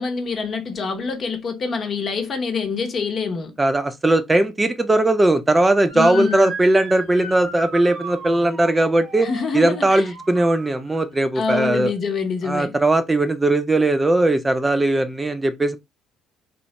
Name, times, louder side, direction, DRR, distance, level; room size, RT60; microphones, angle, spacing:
voice 1, 0.0-3.5 5.9-6.5 9.2-10.0 11.3-12.8, left 5 dB, 45° left, 0.7 m, -26 dB
voice 2, 3.6-11.9 12.4-15.8, right 2 dB, 20° right, 0.4 m, -19 dB
Motor vehicle (road) / Siren, 5.9-11.1, right 2 dB, 55° right, 1.0 m, -35 dB
3.0 x 2.0 x 2.7 m
hypercardioid pair, 55°, 0 cm